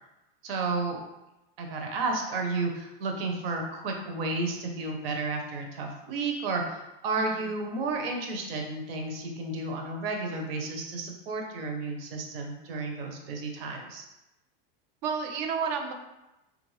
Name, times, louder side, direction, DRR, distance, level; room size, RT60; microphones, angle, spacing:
voice 1, 0.4-1.0 1.6-14.0, right 3 dB, 80° right, 2 dB, 0.8 m, -32 dB
voice 2, 7.2-7.5 15.0-15.9, right 6 dB, 45° right, 5 dB, 0.5 m, -31 dB
3.3 x 2.5 x 3.1 m, 0.96 s
supercardioid pair, 155°, 29 cm